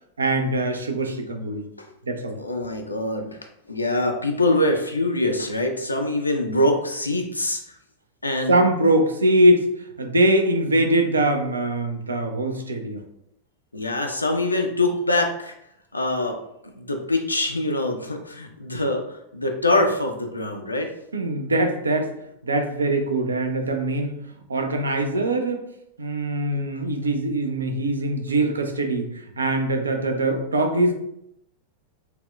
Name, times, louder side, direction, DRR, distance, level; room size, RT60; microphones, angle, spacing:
voice 1, 0.2-1.6 2.1-2.4 8.5-9.7 10.0-13.0 21.1-22.1 22.4-24.2 24.5-25.6 26.0-30.9, right 1 dB, 75° right, 5 dB, 0.4 m, -22 dB
voice 2, 2.4-3.4 3.7-7.6 8.2-8.6 13.7-15.5 15.9-16.4 16.7-20.9 26.7-26.8, left 1 dB, 85° left, 3 dB, 0.3 m, -24 dB
4.1 x 2.1 x 2.3 m, 0.79 s
figure-of-eight pair, 90°, 0 cm